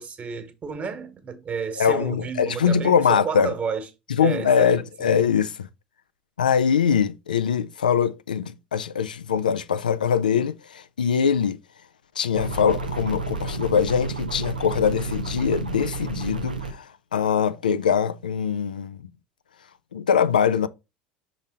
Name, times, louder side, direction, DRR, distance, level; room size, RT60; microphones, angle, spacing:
voice 1, 0.0-3.9 4.2-5.2, right 5 dB, 30° right, 1.5 m, -31 dB
voice 2, 1.8-3.5 4.2-5.7 6.4-11.6 12.2-19.0 19.9-20.7, left 7 dB, 80° left, 0.4 m, -22 dB
sound 1, 12.3-16.7, right 3 dB, 85° right, 0.7 m, -31 dB
6.1 x 4.0 x 3.8 m
figure-of-eight pair, 70°, 4 cm